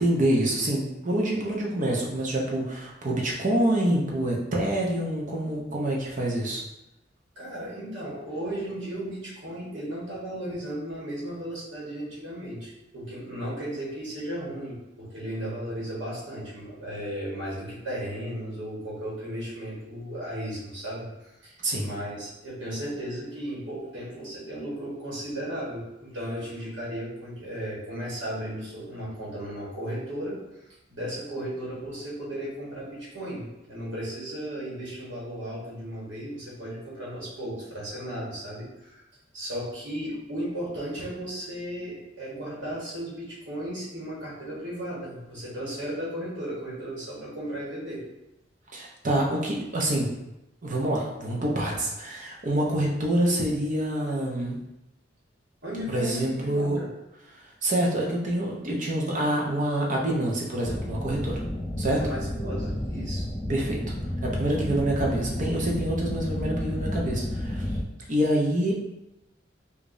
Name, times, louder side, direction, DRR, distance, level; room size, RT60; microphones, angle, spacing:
voice 1, 0.0-6.6 21.6-21.9 48.7-50.1 50.6-54.6 55.9-56.8 57.3-61.5 61.8-62.0 63.5-63.8 64.2-67.6 68.1-68.7, right 1 dB, 45° right, -2 dB, 0.8 m, -26 dB
voice 2, 7.3-30.4 30.9-39.0 39.3-48.0 55.6-56.9 61.9-63.2, right 1 dB, 80° right, -7 dB, 1.4 m, -35 dB
sound 1, 60.6-67.8, left 1 dB, 15° left, 0.4 m, -31 dB
4.9 x 2.5 x 2.6 m, 0.90 s
head